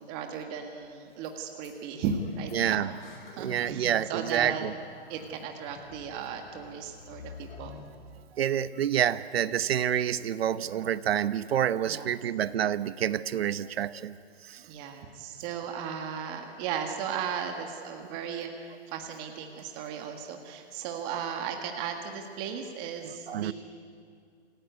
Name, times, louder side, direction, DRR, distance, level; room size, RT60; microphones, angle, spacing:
voice 1, 0.0-3.0 3.3-4.7 5.1-7.8 11.9-12.1 14.7-23.5, right 7 dB, 25° right, 4 dB, 1.8 m, -36 dB
sound 1, 0.8-0.9 1.2-1.3 1.6-1.7 2.0-7.8, left 5 dB, 50° left, 5.3 m, -48 dB
voice 2, 2.5-2.9 3.4-4.7 8.4-14.1 14.5-14.6 23.0-23.5, right 10 dB, 65° right, 15 dB, 1.0 m, -28 dB
27.5 x 16.5 x 9.5 m, 2.3 s
hypercardioid pair, 160°, 33 cm